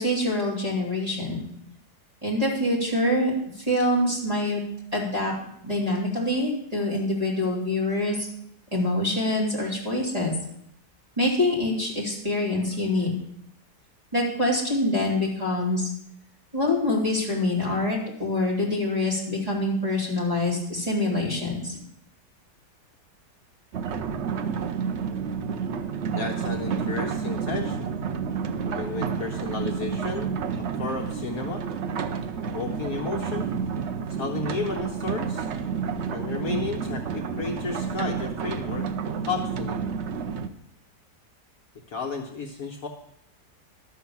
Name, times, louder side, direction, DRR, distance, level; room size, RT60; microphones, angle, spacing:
voice 1, 0.0-1.5 2.2-3.3 3.6-4.6 4.9-5.3 5.6-8.3 8.7-10.3 11.2-13.1 14.1-15.9 16.5-21.8, left 1 dB, 20° right, -4 dB, 3.3 m, -25 dB
sound 1, 23.7-40.5, right 6 dB, 55° right, 0.8 m, -30 dB
voice 2, 26.1-28.0 28.6-30.3 30.6-31.6 32.4-33.5 34.1-35.5 36.1-38.9 39.3-39.8 41.9-42.9, left 5 dB, 60° left, 2 dB, 1.4 m, -33 dB
12.0 x 6.4 x 7.2 m, 0.74 s
omnidirectional pair, 1.8 m